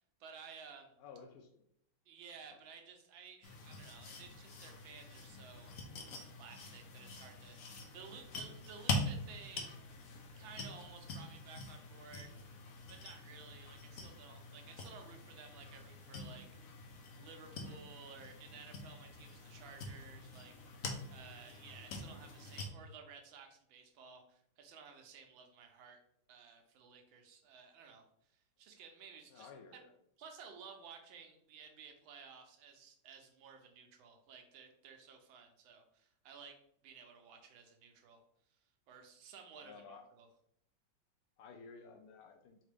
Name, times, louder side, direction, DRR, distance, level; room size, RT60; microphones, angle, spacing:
voice 1, 0.2-0.9 2.1-5.7 6.3-9.8 10.4-12.4 12.9-16.5 17.2-20.5 21.1-26.0 26.3-28.1 28.6-29.8 30.2-36.6 36.8-38.2 38.9-39.8 40.1-40.3, right 6 dB, 85° right, 4 dB, 1.5 m, -55 dB
voice 2, 1.0-1.6 2.5-2.6 29.3-29.9 39.6-40.0 41.4-42.6, left 5 dB, 90° left, 4 dB, 0.8 m, -54 dB
sound 1, 3.4-22.7, left 2 dB, 60° left, 0.9 m, -45 dB
4.0 x 3.7 x 3.3 m, 0.71 s
omnidirectional pair, 2.1 m